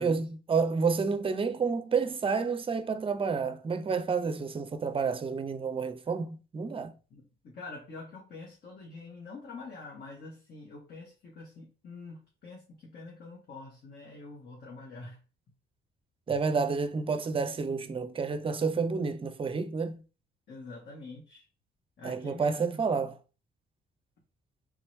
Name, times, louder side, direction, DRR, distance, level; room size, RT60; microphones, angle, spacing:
voice 1, 0.0-6.9 16.3-20.0 22.0-23.1, right 5 dB, 25° right, 0.5 m, -29 dB
voice 2, 7.1-15.2 20.5-21.5 22.0-23.1, left 3 dB, 55° left, 1.3 m, -46 dB
3.7 x 3.0 x 3.1 m
cardioid pair, 90°, 20 cm